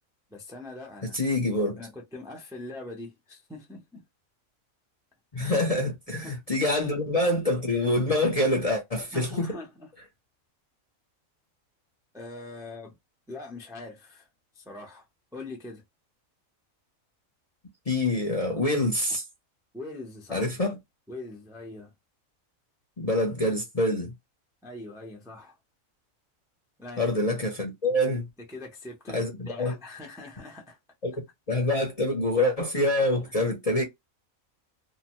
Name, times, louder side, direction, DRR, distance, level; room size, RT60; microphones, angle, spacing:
voice 1, 0.3-1.2 1.8-4.0 5.3-5.6 6.1-6.4 9.1-9.9 12.1-13.0 13.3-14.3 14.5-15.1 15.3-15.8 19.7-20.5 21.1-21.9 24.6-25.6 26.8-27.1 28.5-30.8 33.4-33.5, left 2 dB, 5° right, 0.5 m, -42 dB
voice 2, 1.1-1.8 5.3-9.5 17.9-19.2 20.3-20.8 23.0-24.1 27.0-28.2 29.1-29.8 31.0-31.2 31.5-33.8, left 1 dB, 35° left, 0.7 m, -26 dB
2.8 x 2.1 x 2.9 m
omnidirectional pair, 1.4 m